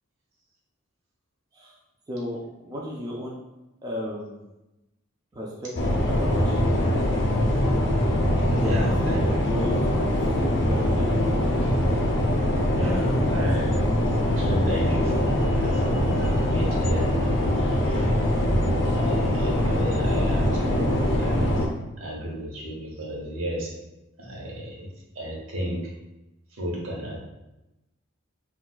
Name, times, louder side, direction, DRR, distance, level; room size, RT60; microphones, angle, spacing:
voice 1, 2.1-3.3 3.8-4.4 5.3-6.6 8.5-11.5, equal, 20° right, -4 dB, 0.4 m, -34 dB
sound 1, 5.8-21.7, left 1 dB, 55° left, 0.5 m, -23 dB
voice 2, 8.5-9.8 12.7-13.8 14.3-17.1 17.5-18.1 18.8-21.7 22.0-23.7 24.2-24.9 25.1-25.8 26.5-27.2, right 1 dB, 80° right, -4 dB, 1.0 m, -33 dB
4.0 x 2.3 x 2.2 m, 0.97 s
head